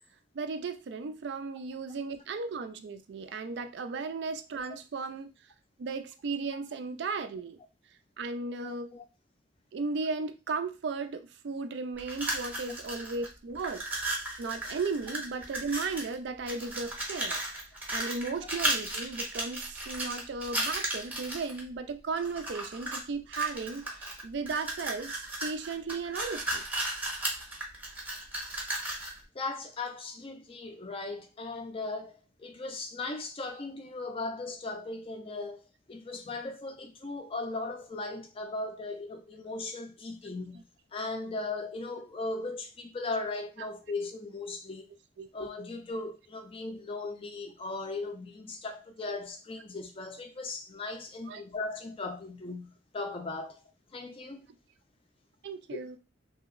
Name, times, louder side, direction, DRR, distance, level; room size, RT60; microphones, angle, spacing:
voice 1, 0.3-5.3 5.8-7.6 8.2-8.9 9.7-13.9 14.4-17.4 17.9-26.6 45.2-45.3 51.3-51.4 55.4-56.0, right 4 dB, 60° right, 0.3 m, -35 dB
voice 2, 8.6-9.0 29.3-35.6 35.9-44.9 45.3-53.6 53.9-54.5, left 3 dB, 30° left, 0.4 m, -38 dB
sound 1, 12.0-13.3 13.6-16.1 16.5-21.6 22.2-23.0 23.3-29.2, right 1 dB, 10° right, 0.7 m, -35 dB
2.9 x 2.7 x 2.4 m
head